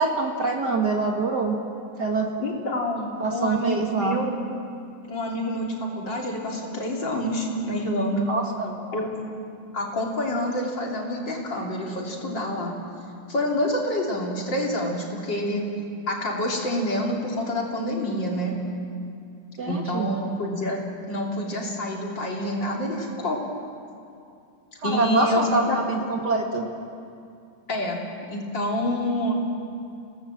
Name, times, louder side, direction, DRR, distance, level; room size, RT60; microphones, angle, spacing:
voice 1, 0.0-1.6 2.0-2.3 3.2-4.2 8.3-8.7 19.6-20.1 24.8-26.7, right 3 dB, 40° right, 1 dB, 2.1 m, -25 dB
voice 2, 2.4-4.4 5.1-8.3 8.9-9.1 9.7-12.7 13.3-15.6 16.1-18.6 19.7-23.4 24.8-25.9 27.7-28.0 28.3-29.3, left 1 dB, 40° left, -1 dB, 3.5 m, -27 dB
27.5 x 18.0 x 7.5 m, 2.5 s
omnidirectional pair, 3.4 m